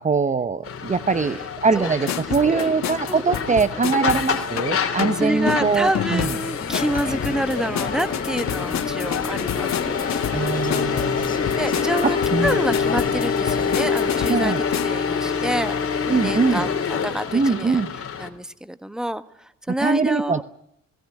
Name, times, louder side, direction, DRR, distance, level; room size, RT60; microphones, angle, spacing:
voice 1, 0.0-6.3 10.3-11.3 12.0-12.6 14.3-14.6 16.1-16.7 17.3-17.9 19.7-20.4, right 4 dB, 25° right, 12 dB, 0.9 m, -22 dB
sound 1, 0.6-18.3, left 6 dB, 45° left, 3.1 m, -26 dB
voice 2, 1.1-1.4 1.8-2.1 2.4-3.5 4.1-4.3 4.9-10.1 11.6-14.5 14.8-17.8 18.2-20.4, right 1 dB, ahead, 12 dB, 1.3 m, -28 dB
sound 2, 2.1-15.0, left 10 dB, 65° left, 1.5 m, -30 dB
sound 3, 6.6-14.3, left 5 dB, 30° left, 1.5 m, -32 dB
18.0 x 18.0 x 9.6 m, 0.72 s
cardioid pair, 90°, 30 cm